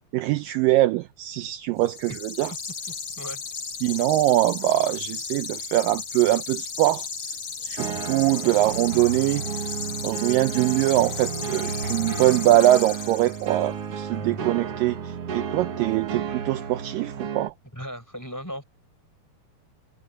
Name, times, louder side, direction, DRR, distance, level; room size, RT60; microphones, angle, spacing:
voice 1, 0.1-2.5 3.8-7.1 7.6-9.7 10.0-17.5, right 16 dB, 80° right, 2.0 m, -23 dB
sound 1, 1.8-13.6, left 5 dB, 40° left, 5.0 m, -35 dB
sound 2, 7.8-17.5, right 7 dB, 50° right, 2.0 m, -32 dB
voice 2, 17.7-18.6, equal, 5° left, 5.3 m, -36 dB
omnidirectional pair, 4.6 m